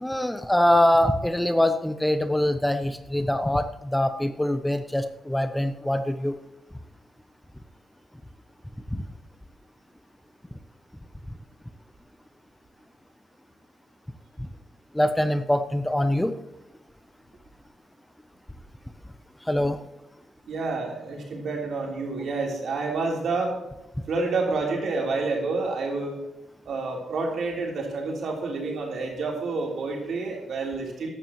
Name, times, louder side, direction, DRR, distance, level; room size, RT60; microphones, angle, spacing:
voice 1, 0.0-6.4 8.9-9.0 14.9-16.3 19.5-19.8, left 1 dB, 5° left, 9 dB, 0.6 m, -23 dB
voice 2, 20.5-23.5 24.1-26.2 26.7-31.1, right 3 dB, 65° right, 0 dB, 3.6 m, -28 dB
14.5 x 11.5 x 3.1 m, 0.98 s
cardioid pair, 130°, 0 cm